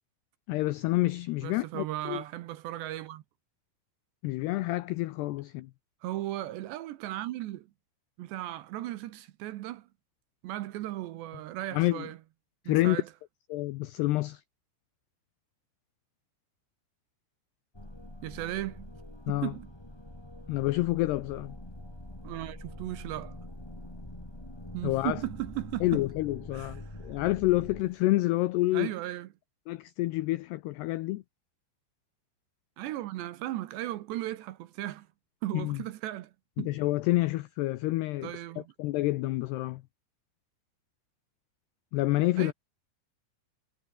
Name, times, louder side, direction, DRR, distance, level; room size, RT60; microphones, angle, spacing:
voice 1, 0.5-2.2 4.2-5.7 11.7-12.1 12.7-13.0 13.5-14.4 19.3-19.5 20.5-21.6 24.8-25.2 25.8-28.9 29.7-31.2 35.5-35.8 36.6-38.3 38.8-39.8 41.9-42.5, left 18 dB, 85° left, 2.3 m, -28 dB
voice 2, 1.4-3.2 6.0-7.7 8.2-9.9 10.4-12.2 12.7-13.1 18.2-18.9 19.3-19.7 22.2-23.4 24.7-26.0 26.5-26.7 28.7-29.3 32.8-35.1 35.4-36.7 38.2-38.6 42.4-42.5, right 15 dB, 75° right, 2.8 m, -36 dB
sound 1, 17.7-28.1, left 1 dB, 5° left, 2.1 m, -45 dB
omnidirectional pair, 5.8 m